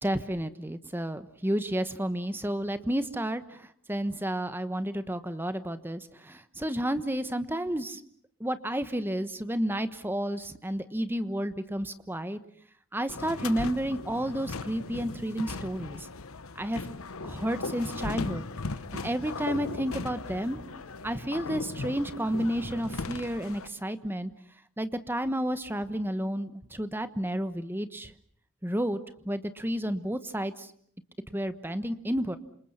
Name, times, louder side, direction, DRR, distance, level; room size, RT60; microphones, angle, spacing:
voice 1, 0.0-8.0 8.4-12.4 12.9-16.1 16.6-16.8 17.2-18.4 18.9-20.6 21.0-24.3 24.8-28.1 28.6-29.0 29.2-30.7 31.3-32.4, right 1 dB, 10° right, 11 dB, 1.2 m, -31 dB
sound 1, 13.1-23.7, left 3 dB, 75° left, 1.1 m, -38 dB
28.5 x 27.0 x 5.7 m, 0.62 s
head